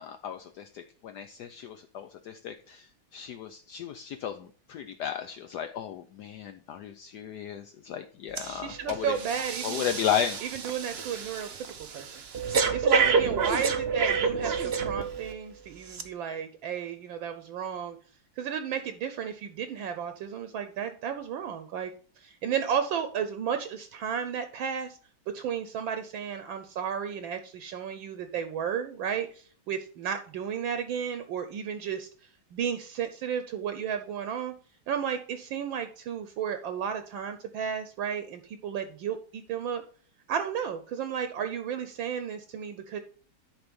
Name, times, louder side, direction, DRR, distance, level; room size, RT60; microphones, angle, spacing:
voice 1, 0.0-2.9 3.1-9.2 9.6-10.4, left 9 dB, 75° left, 8 dB, 0.9 m, -34 dB
voice 2, 8.4-9.8 10.4-11.7 11.9-12.1 12.7-18.0 18.4-21.9 22.2-25.0 25.3-32.1 32.5-34.5 34.9-39.8 40.3-43.0, right 8 dB, 70° right, 9 dB, 1.4 m, -33 dB
Breathing, 8.4-8.5 8.9-15.3 15.9-16.0, right 5 dB, 85° right, 0.5 m, -28 dB
10.5 x 4.1 x 5.2 m, 0.42 s
omnidirectional pair, 2.3 m